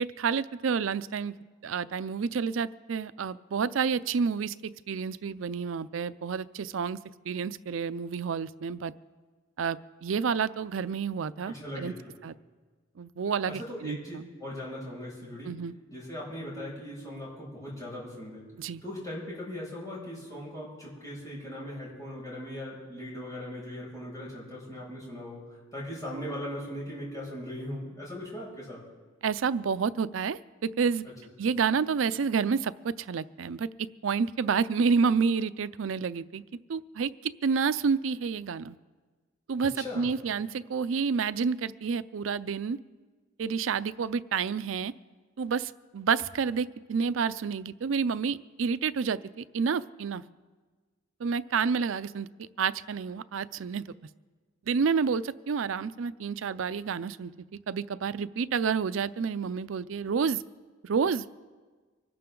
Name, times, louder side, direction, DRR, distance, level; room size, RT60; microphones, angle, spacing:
voice 1, 0.0-1.3 1.6-7.0 7.3-8.9 9.6-11.9 12.2-12.3 13.0-14.0 15.4-15.7 18.6-18.8 29.2-31.0 31.4-36.4 36.7-38.8 39.5-42.8 43.4-44.9 45.4-50.2 51.2-53.8 54.7-57.3 57.7-60.4 60.8-61.2, right 5 dB, 85° right, 16 dB, 0.4 m, -29 dB
voice 2, 11.4-12.1 13.5-15.5 15.9-18.5 18.8-25.4 25.7-28.8 31.4-31.5 39.8-40.0, left 1 dB, 20° left, -6 dB, 6.4 m, -39 dB
25.0 x 12.5 x 3.8 m, 1.4 s
head